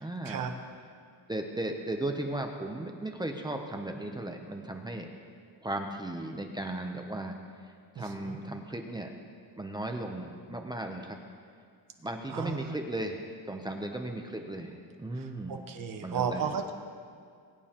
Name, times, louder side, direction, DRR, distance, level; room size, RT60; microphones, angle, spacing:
voice 1, 0.0-0.4 1.3-5.1 5.6-7.4 8.0-9.1 9.6-11.2 12.0-13.2 13.5-14.7 15.0-15.6 16.0-16.4, right 1 dB, 10° right, 3 dB, 0.6 m, -36 dB
voice 2, 8.0-8.4 12.3-12.7 15.1-16.7, right 7 dB, 45° right, 5 dB, 1.1 m, -34 dB
21.0 x 9.2 x 2.9 m, 2.2 s
cardioid pair, 170°, 45 cm